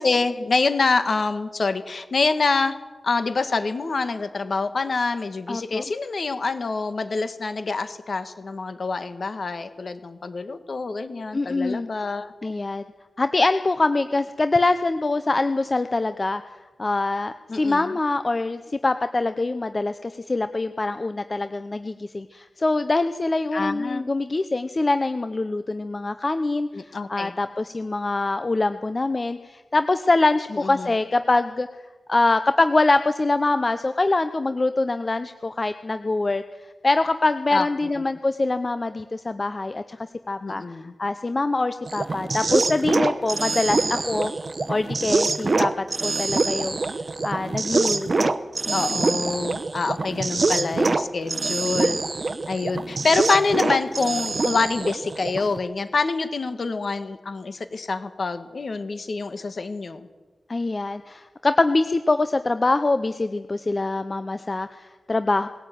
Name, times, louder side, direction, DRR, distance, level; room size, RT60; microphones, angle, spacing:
voice 1, 0.0-2.8 3.0-12.3 17.5-17.9 23.5-24.1 26.7-27.4 30.6-30.9 37.5-37.7 40.4-40.9 48.7-52.0 52.5-60.1, left 4 dB, 50° left, 10 dB, 1.8 m, -26 dB
voice 2, 5.5-5.8 11.3-11.9 12.4-12.8 13.2-16.4 16.8-31.7 32.1-36.4 36.8-44.3 44.7-46.8 47.2-48.3 48.7-49.0 60.5-65.5, left 2 dB, 30° left, 10 dB, 0.8 m, -24 dB
sound 1, 41.9-55.6, right 3 dB, 40° right, 1.0 m, -25 dB
20.0 x 17.0 x 9.4 m, 1.2 s
wide cardioid pair, 130°, 0 cm